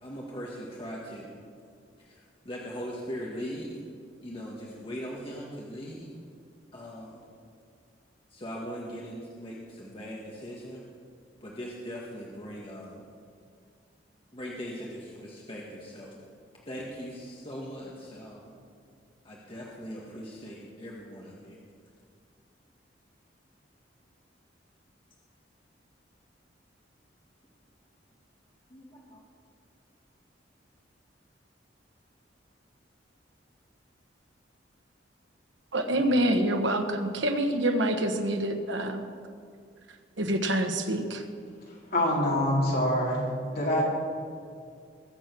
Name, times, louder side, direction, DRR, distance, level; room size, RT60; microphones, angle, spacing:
voice 1, 0.0-1.3 2.0-3.8 4.2-6.1 6.7-7.2 8.3-10.8 11.4-13.1 14.3-16.2 16.7-18.5 19.2-21.6 28.7-29.2, equal, 30° left, -3 dB, 1.7 m, -40 dB
voice 2, 35.7-39.1 40.2-41.2, right 1 dB, 85° right, 5 dB, 1.3 m, -26 dB
voice 3, 41.9-43.8, left 1 dB, 55° left, -4 dB, 4.3 m, -25 dB
21.0 x 7.7 x 6.2 m, 2.3 s
head